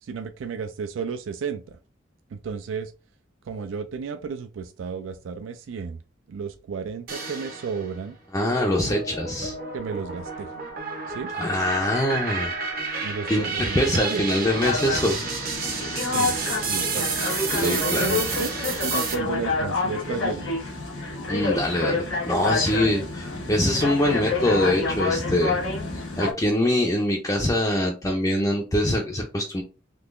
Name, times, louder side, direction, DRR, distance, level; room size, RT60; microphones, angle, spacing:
voice 1, 0.0-1.8 2.3-2.9 3.4-6.0 6.3-8.2 8.8-8.9 9.7-10.5 11.1-11.3 13.0-14.3 16.0-17.3 17.6-20.5, right 5 dB, 85° right, 8 dB, 0.3 m, -33 dB
sound 1, 7.1-7.9 8.4-19.1, right 4 dB, 50° right, 0.8 m, -30 dB
voice 2, 8.3-9.5 11.4-12.5 13.3-13.4 13.7-15.2 17.5-18.1 21.3-25.6 26.2-29.6, left 1 dB, 15° left, -1 dB, 0.4 m, -24 dB
sound 2, 14.5-26.3, left 3 dB, 75° left, 1.2 m, -28 dB
3.7 x 2.8 x 2.5 m, 0.32 s
head